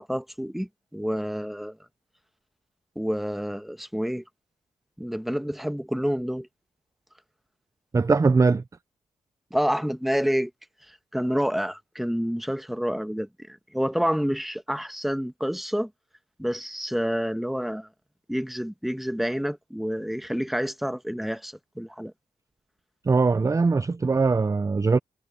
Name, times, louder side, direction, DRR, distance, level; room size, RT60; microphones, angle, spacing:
voice 1, 0.0-1.8 2.9-4.2 5.0-6.5 9.5-10.5 10.9-15.9 16.4-17.9 18.3-22.1, equal, ahead, 1.5 m, -28 dB
voice 2, 7.9-8.6 23.0-25.0, right 4 dB, 25° right, 0.5 m, -21 dB
cardioid pair, 75°, 13 cm